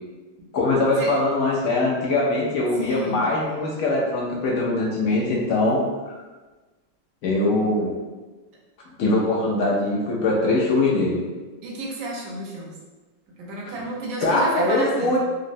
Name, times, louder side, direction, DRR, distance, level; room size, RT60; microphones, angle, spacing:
voice 1, 0.5-6.1 7.2-7.9 9.0-11.2 14.2-15.2, left 2 dB, 80° left, -4 dB, 0.7 m, -22 dB
voice 2, 2.8-3.3 11.6-12.8 13.4-15.2, right 1 dB, 75° right, -3 dB, 1.4 m, -32 dB
3.6 x 2.0 x 2.5 m, 1.2 s
omnidirectional pair, 2.1 m